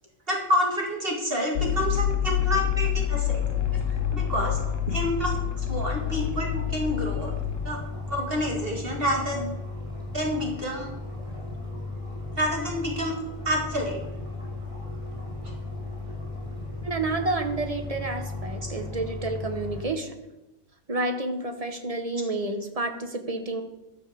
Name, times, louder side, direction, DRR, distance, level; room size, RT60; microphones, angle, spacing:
voice 1, 0.3-3.4 3.7-3.8 4.1-4.6 4.9-7.3 7.6-7.8 8.1-9.5 10.1-10.9 12.3-13.2 13.4-14.0, equal, 45° right, 0 dB, 2.4 m, -28 dB
sound 1, 1.6-7.7, left 12 dB, 70° left, 1.1 m, -27 dB
Indoor Fish Tank without Bubble strips Ambiance, 3.3-19.8, left 2 dB, 5° right, 5.4 m, -36 dB
voice 2, 16.8-20.2 20.9-23.6, right 2 dB, 25° right, 6 dB, 1.3 m, -30 dB
12.0 x 7.2 x 7.0 m, 0.98 s
omnidirectional pair, 1.4 m